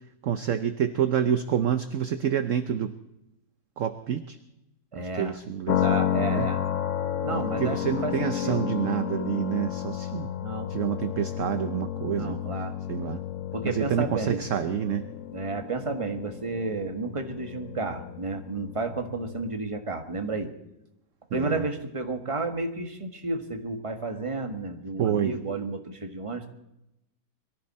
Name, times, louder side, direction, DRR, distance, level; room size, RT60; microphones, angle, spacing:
voice 1, 0.2-2.9 3.8-4.4 5.0-5.8 6.3-6.5 7.3-10.3 10.7-12.4 12.9-13.2 13.6-15.0 21.3-21.6 25.0-25.4, right 9 dB, 55° right, 10 dB, 1.0 m, -28 dB
voice 2, 4.9-5.4 5.8-6.6 7.2-8.7 10.4-10.7 12.1-12.8 13.5-14.4 15.3-20.5 21.3-26.5, right 3 dB, 20° right, 6 dB, 1.4 m, -32 dB
sound 1, 5.7-19.5, left 11 dB, 55° left, 1.0 m, -32 dB
22.5 x 14.0 x 4.3 m, 0.86 s
omnidirectional pair, 1.9 m